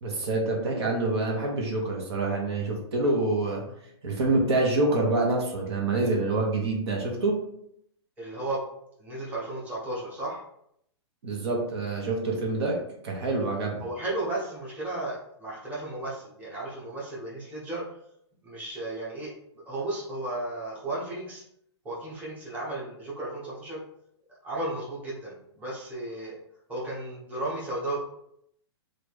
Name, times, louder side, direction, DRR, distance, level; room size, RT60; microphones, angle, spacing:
voice 1, 0.0-3.6 4.0-7.4 11.2-12.8 13.0-13.8, right 2 dB, 70° right, 0 dB, 1.0 m, -26 dB
voice 2, 8.2-8.6 9.0-10.4 13.8-17.8 18.4-19.3 19.7-21.4 21.8-23.8 24.4-26.4 26.7-28.0, right 2 dB, 10° right, -7 dB, 1.1 m, -34 dB
3.0 x 2.5 x 3.4 m, 0.72 s
hypercardioid pair, 150°, 15 cm